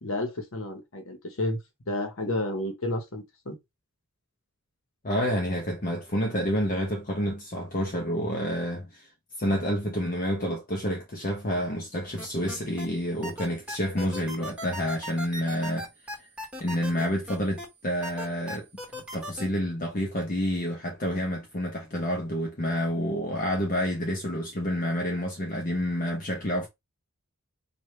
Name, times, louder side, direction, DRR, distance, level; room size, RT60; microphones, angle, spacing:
voice 1, 0.0-1.6 1.9-3.6, left 1 dB, 65° left, 1.1 m, -31 dB
voice 2, 5.0-9.1 9.4-15.9 16.6-18.7 18.9-26.7, equal, 40° left, 0.8 m, -29 dB
sound 1, 12.2-12.9 13.2-17.7 18.0-19.5, left 1 dB, 5° right, 1.5 m, -37 dB
4.8 x 2.5 x 3.3 m
head